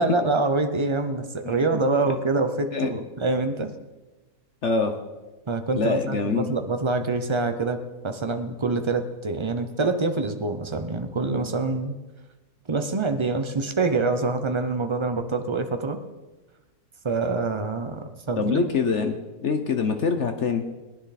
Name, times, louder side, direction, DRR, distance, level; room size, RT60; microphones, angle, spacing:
voice 1, 0.0-3.7 5.5-7.8 8.0-12.0 12.7-16.0 17.0-18.6, right 3 dB, 25° right, 7 dB, 0.6 m, -25 dB
voice 2, 4.6-4.9 5.7-6.5 18.4-19.2 19.4-20.6, left 4 dB, 55° left, 6 dB, 1.1 m, -24 dB
19.0 x 10.5 x 4.2 m, 1.1 s
omnidirectional pair, 1.7 m